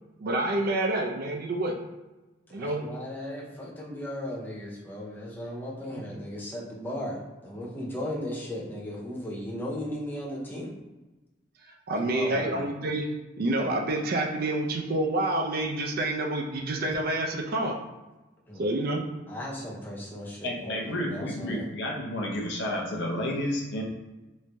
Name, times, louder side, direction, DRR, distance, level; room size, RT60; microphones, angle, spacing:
voice 1, 0.2-1.7 2.5-2.8 11.9-13.1 13.4-17.8 18.6-19.0, right 2 dB, 45° right, 2 dB, 0.4 m, -28 dB
voice 2, 2.5-7.2 7.4-10.7 12.0-12.6 18.5-18.7 19.3-21.7, equal, 10° left, -3 dB, 0.6 m, -36 dB
voice 3, 20.4-23.8, left 1 dB, 55° left, -1 dB, 0.6 m, -31 dB
3.1 x 2.6 x 3.3 m, 1.1 s
head